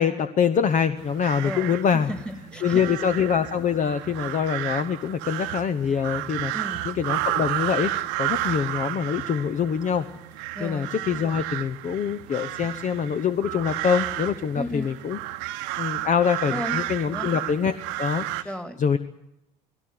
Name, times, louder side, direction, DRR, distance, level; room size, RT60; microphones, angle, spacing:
voice 1, 0.0-2.1 2.6-6.5 6.8-7.9 8.2-10.0 10.6-15.2 15.8-18.5 18.8-19.0, left 7 dB, 35° left, 10 dB, 0.9 m, -24 dB
sound 1, 1.0-18.4, right 15 dB, 65° right, 1.0 m, -32 dB
voice 2, 1.4-2.9 6.5-6.8 10.5-10.9 14.6-14.9 16.5-16.8 17.1-17.3 18.4-18.8, equal, 5° left, 7 dB, 2.5 m, -34 dB
19.5 x 17.0 x 9.6 m, 0.86 s
figure-of-eight pair, 60°, 21 cm